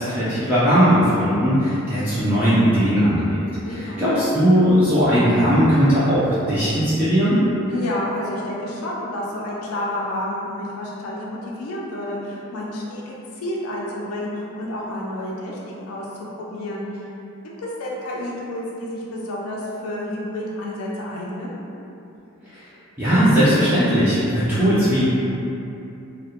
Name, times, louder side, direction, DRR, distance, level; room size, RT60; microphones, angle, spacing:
voice 1, 0.0-3.4 3.8-7.4 22.5-22.6 23.0-25.0, equal, 10° right, -13 dB, 0.3 m, -18 dB
voice 2, 3.5-4.1 7.7-17.1 17.6-21.6, left 1 dB, 85° left, -5 dB, 0.4 m, -30 dB
2.3 x 2.1 x 2.8 m, 2.9 s
head